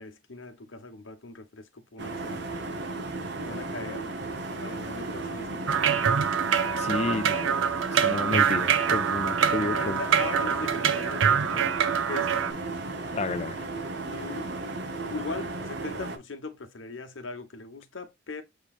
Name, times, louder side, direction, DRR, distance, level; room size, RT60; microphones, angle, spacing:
voice 1, 0.0-2.8 3.4-4.2 4.6-6.4 9.5-11.7 12.1-12.6 14.0-14.5 15.1-18.4, left 3 dB, 85° left, 1.0 m, -40 dB
sound 1, 2.0-16.2, right 2 dB, 60° right, 0.9 m, -35 dB
sound 2, 5.7-12.5, right 7 dB, 85° right, 0.5 m, -25 dB
voice 2, 6.8-7.6 7.9-10.0 13.1-13.6, left 3 dB, 35° left, 0.3 m, -31 dB
6.8 x 3.0 x 2.4 m
head